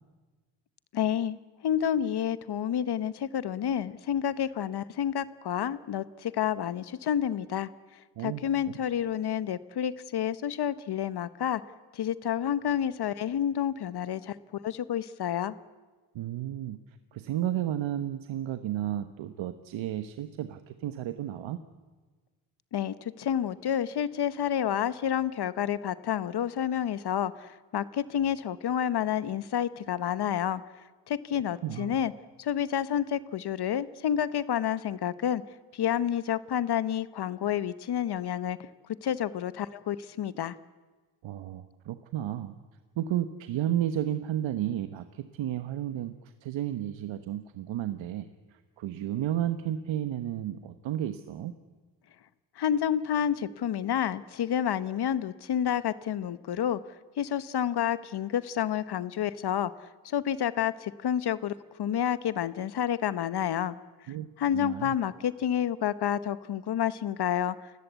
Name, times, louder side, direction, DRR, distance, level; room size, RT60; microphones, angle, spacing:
voice 1, 0.9-1.4 1.6-7.7 8.2-11.6 11.9-15.5 22.7-30.6 31.1-32.1 32.4-35.4 35.7-38.7 39.0-40.6 52.6-56.8 57.2-59.7 60.0-61.5 61.8-63.7 64.4-67.5, left 9 dB, 55° left, 15 dB, 1.1 m, -29 dB
voice 2, 16.1-16.8 17.1-21.6 31.6-32.0 41.2-42.6 43.0-46.1 46.4-51.5 64.1-64.3 64.5-65.0, right 12 dB, 80° right, 9 dB, 1.2 m, -32 dB
29.0 x 16.5 x 8.2 m, 1.3 s
cardioid pair, 105°, 45 cm